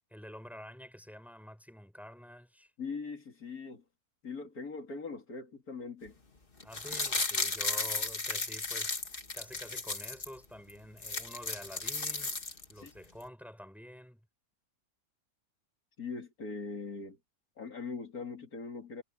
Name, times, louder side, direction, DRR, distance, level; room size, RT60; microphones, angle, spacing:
voice 1, 0.1-2.7 6.6-9.0 9.3-14.2, equal, ahead, 4.8 m, -49 dB
voice 2, 2.8-3.8 4.2-6.2 12.8-12.9 16.0-17.2 17.6-19.0, left 4 dB, 85° left, 3.3 m, -41 dB
sound 1, 6.6-10.3 10.7-10.8 11.0-12.9 13.2-13.3, left 3 dB, 40° left, 2.2 m, -34 dB
omnidirectional pair, 1.5 m